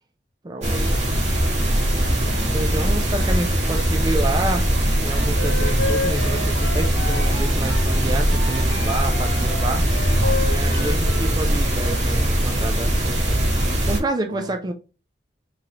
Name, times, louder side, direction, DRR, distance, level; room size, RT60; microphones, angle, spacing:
voice 1, 0.4-1.0 2.5-4.6 5.0-13.4 13.9-14.7, right 2 dB, 20° right, 0.4 m, -29 dB
sound 1, 0.6-14.0, right 1 dB, 35° right, 1.1 m, -21 dB
voice 2, 1.9-2.5 14.3-14.7, equal, 90° right, 1.3 m, -40 dB
sound 2, 2.0-2.1 2.6-2.7 3.1-4.1 4.4-5.1 5.3-8.0 8.5-9.4 9.9-11.4 11.7-12.3 12.7-12.8 13.3-13.7, right 2 dB, 65° right, 0.8 m, -36 dB
Wind instrument woodwind instrument, 5.1-7.9 8.3-11.4, left 3 dB, 65° left, 1.0 m, -31 dB
3.7 x 3.2 x 2.8 m
head